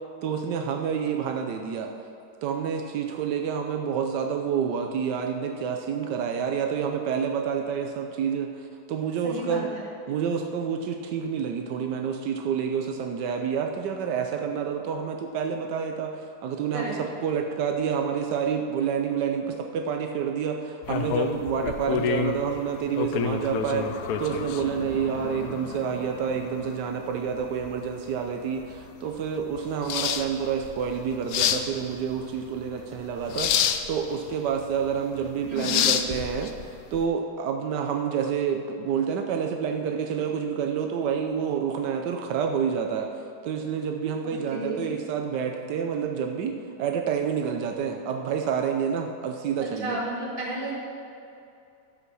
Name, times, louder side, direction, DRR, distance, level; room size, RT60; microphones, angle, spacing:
voice 1, 0.2-1.9 2.4-9.7 10.1-16.9 17.2-43.1 43.4-50.0, right 7 dB, 85° right, 4 dB, 1.3 m, -28 dB
voice 2, 9.2-9.8 16.7-16.9 35.5-35.8 44.2-44.8 49.6-50.7, right 1 dB, 30° right, -6 dB, 2.6 m, -33 dB
sound 1, 20.8-37.0, left 8 dB, 70° left, 1.0 m, -30 dB
12.0 x 5.7 x 6.2 m, 2.6 s
omnidirectional pair, 1.8 m